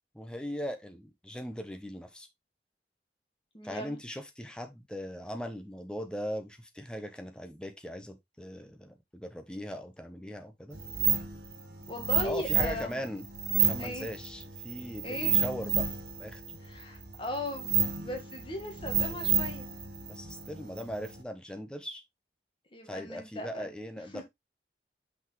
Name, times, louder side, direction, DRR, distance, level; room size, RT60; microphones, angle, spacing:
voice 1, 0.1-2.3 3.6-10.8 12.2-13.2 13.6-15.9 16.2-16.4 20.1-22.0 22.8-24.2, equal, 5° left, 0.9 m, -39 dB
voice 2, 3.5-4.0 11.9-13.0 13.8-14.1 15.0-15.3 16.6-19.7 22.7-23.7 24.1-24.2, left 1 dB, 30° left, 1.6 m, -38 dB
sound 1, 10.7-21.2, right 7 dB, 60° right, 1.2 m, -31 dB
5.9 x 5.4 x 3.1 m
head